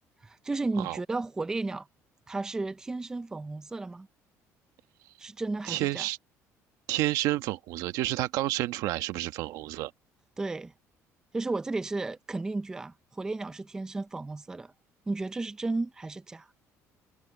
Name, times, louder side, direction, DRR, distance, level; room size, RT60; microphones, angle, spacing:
voice 1, 0.2-1.9 2.3-4.1 5.2-6.1 10.4-10.7 11.3-14.7 15.1-16.5, right 3 dB, 10° right, 0.4 m, -33 dB
voice 2, 5.7-6.2 6.9-9.9, right 16 dB, 80° right, 1.2 m, -30 dB
cardioid pair, 160°, 6 cm